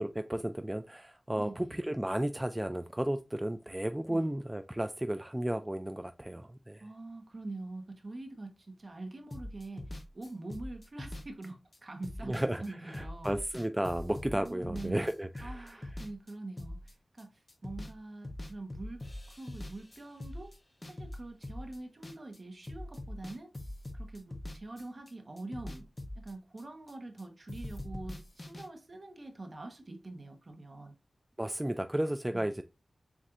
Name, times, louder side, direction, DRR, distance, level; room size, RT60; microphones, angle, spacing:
voice 1, 0.0-6.8 12.3-15.7 31.4-32.6, right 1 dB, 15° right, 0.3 m, -33 dB
voice 2, 1.3-1.8 4.1-4.3 6.8-13.4 14.3-15.1 15.4-20.5 20.9-23.5 23.9-25.9 26.1-30.9 32.3-32.5, right 2 dB, 45° right, 1.1 m, -45 dB
sound 1, 9.3-17.2 17.5-18.0 18.2-22.4 22.6-25.1 25.4-27.2 27.5-28.7, left 1 dB, 30° left, 0.8 m, -43 dB
7.2 x 2.6 x 2.5 m
wide cardioid pair, 95°, 0 cm